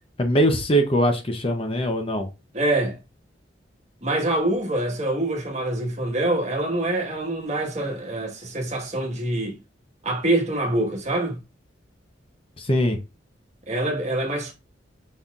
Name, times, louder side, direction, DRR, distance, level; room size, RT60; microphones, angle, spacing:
voice 1, 0.2-2.3 12.6-13.0, equal, 30° left, 0.7 m, -21 dB
voice 2, 2.5-3.0 4.0-9.6 10.0-11.4 13.7-14.5, right 1 dB, 40° right, 1.4 m, -25 dB
5.5 x 4.0 x 2.4 m
head